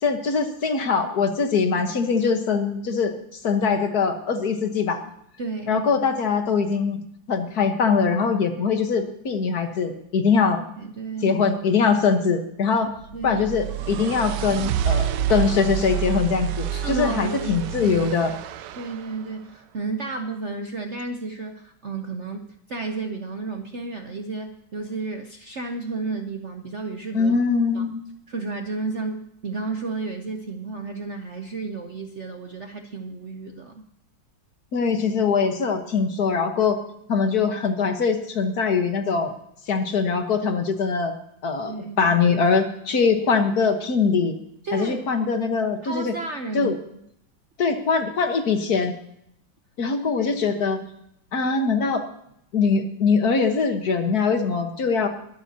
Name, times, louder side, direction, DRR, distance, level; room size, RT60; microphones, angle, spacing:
voice 1, 0.0-3.1 3.4-5.0 5.7-7.0 7.3-10.6 11.2-12.9 13.2-18.3 27.1-28.0 34.7-36.8 37.1-39.3 39.7-41.1 41.4-44.3 44.7-46.1 46.5-46.7 47.6-48.9 49.8-50.8 51.3-52.0 52.5-55.1, left 5 dB, 55° left, 6 dB, 1.7 m, -22 dB
voice 2, 5.4-5.9 8.7-8.8 10.8-11.4 13.1-13.4 13.9-14.1 16.7-18.0 18.7-27.3 27.7-27.9 28.3-33.8 41.7-42.2 44.6-45.1 45.8-47.0 50.2-50.6, right 3 dB, 50° right, 5 dB, 0.8 m, -32 dB
sound 1, 13.0-19.1, right 10 dB, 70° right, 1.2 m, -28 dB
22.0 x 12.0 x 2.8 m, 0.73 s
omnidirectional pair, 2.1 m